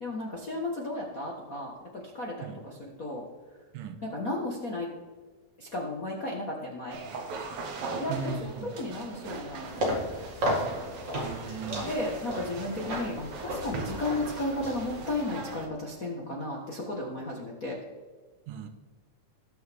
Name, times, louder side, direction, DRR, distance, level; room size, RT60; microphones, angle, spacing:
voice 1, 0.0-3.2 4.0-4.9 5.6-7.0 7.9-10.0 11.8-17.8, left 2 dB, 50° left, -3 dB, 1.0 m, -34 dB
sound 1, 6.9-15.7, right 4 dB, 60° right, 1.9 m, -40 dB
voice 2, 8.1-8.7 11.1-11.9 18.5-18.7, right 6 dB, 90° right, 7 dB, 2.6 m, -37 dB
sound 2, 9.6-15.3, equal, 35° right, 3.0 m, -34 dB
20.0 x 6.7 x 3.5 m, 1.4 s
omnidirectional pair, 3.7 m